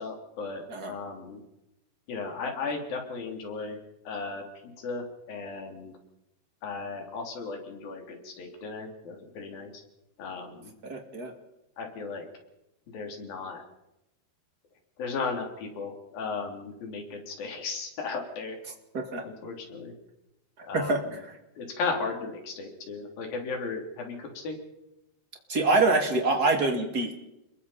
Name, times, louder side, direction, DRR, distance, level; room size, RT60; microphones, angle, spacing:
voice 1, 0.0-1.4 2.1-3.8 4.0-5.9 6.6-9.8 10.2-10.7 11.8-12.3 12.9-13.6 15.0-18.6 19.2-19.9 20.6-21.1 21.6-24.6, left 4 dB, 60° left, 2 dB, 5.0 m, -35 dB
voice 2, 10.8-11.3 18.9-19.2 20.6-21.0 25.5-27.1, right 3 dB, 25° right, 3 dB, 2.5 m, -25 dB
27.5 x 22.5 x 4.3 m, 0.90 s
omnidirectional pair, 4.7 m